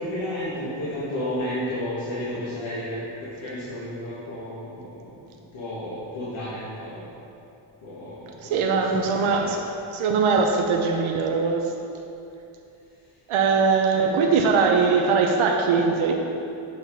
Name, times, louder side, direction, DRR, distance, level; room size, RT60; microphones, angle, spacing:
voice 1, 0.0-7.1 7.8-9.5 13.9-14.4, left 1 dB, 70° left, -10 dB, 1.7 m, -33 dB
voice 2, 8.5-9.6 9.9-11.6 13.3-16.1, right 5 dB, 90° right, 2 dB, 0.8 m, -21 dB
8.0 x 5.6 x 4.1 m, 2.7 s
cardioid pair, 110°, 47 cm